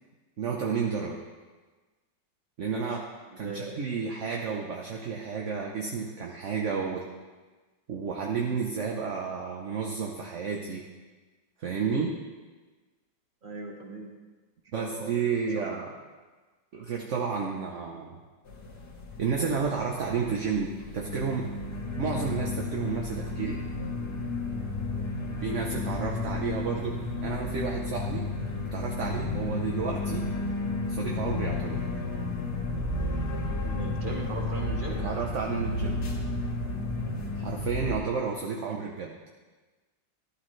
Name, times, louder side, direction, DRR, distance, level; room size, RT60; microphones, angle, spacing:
voice 1, 0.4-1.2 2.6-3.1 3.4-7.0 7.9-10.8 11.6-12.2 14.7-15.9 16.7-18.2 19.2-21.5 22.0-23.6 25.4-27.0 27.2-28.3 28.7-30.3 30.9-31.8 34.9-36.0 37.4-39.1, right 5 dB, 50° right, 0 dB, 1.0 m, -31 dB
voice 2, 3.4-3.8 13.4-14.1 14.7-15.2 15.5-15.8 33.6-35.0 38.4-38.5, right 3 dB, 30° right, -1 dB, 1.7 m, -39 dB
sound 1, 18.5-38.0, left 2 dB, 65° left, 2.0 m, -32 dB
13.0 x 12.0 x 3.2 m, 1.3 s
omnidirectional pair, 2.0 m